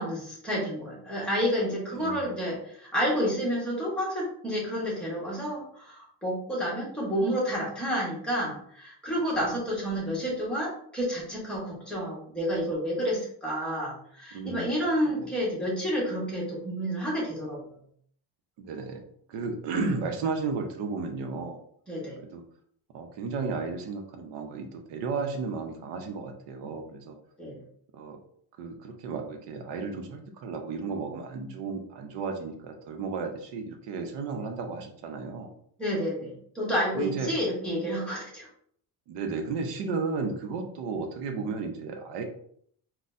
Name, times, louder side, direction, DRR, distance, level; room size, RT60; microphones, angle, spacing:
voice 1, 0.0-17.7 21.9-22.2 27.4-27.6 35.8-38.5, equal, ahead, -5 dB, 1.1 m, -30 dB
voice 2, 1.9-2.3 14.3-14.7 15.0-15.3 18.6-19.0 19.3-21.6 22.3-22.4 22.9-27.2 27.9-28.2 28.6-35.5 36.9-37.4 39.1-42.2, right 4 dB, 80° right, 5 dB, 0.7 m, -33 dB
4.1 x 2.2 x 2.5 m, 0.63 s
cardioid pair, 175°, 41 cm